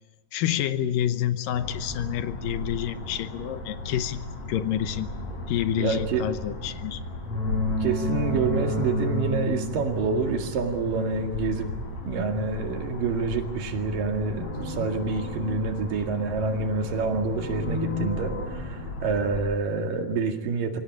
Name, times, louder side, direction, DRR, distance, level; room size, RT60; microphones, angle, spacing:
voice 1, 0.3-5.1 5.5-7.0, left 10 dB, 80° left, 12 dB, 2.6 m, -28 dB
sound 1, 1.5-19.5, left 1 dB, 50° left, 5.3 m, -33 dB
voice 2, 5.8-6.3 7.8-11.7 12.1-20.8, right 4 dB, 70° right, 5 dB, 3.7 m, -27 dB
24.5 x 17.0 x 9.9 m, 1.1 s
omnidirectional pair, 4.1 m